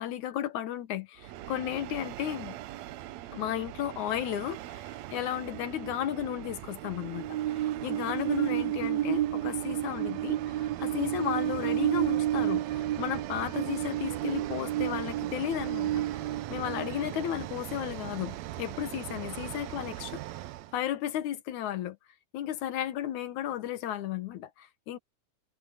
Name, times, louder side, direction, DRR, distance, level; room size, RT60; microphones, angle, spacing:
voice 1, 0.0-2.6 3.3-4.8 5.1-16.2 16.5-20.2 20.7-22.0 22.3-25.0, left 11 dB, 75° left, 2.5 m, -34 dB
Train, 1.2-20.7, right 13 dB, 75° right, 1.8 m, -33 dB
omnidirectional pair, 3.5 m